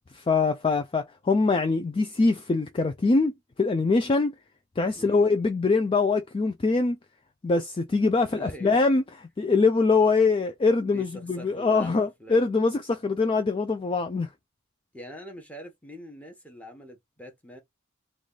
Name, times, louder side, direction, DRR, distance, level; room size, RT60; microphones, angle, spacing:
voice 1, 0.1-4.3 4.8-7.0 7.4-9.0 9.4-14.3, left 3 dB, 25° left, 0.3 m, -23 dB
voice 2, 8.2-8.8 10.8-12.5 14.9-17.6, equal, 5° left, 1.0 m, -43 dB
3.3 x 2.3 x 3.8 m
head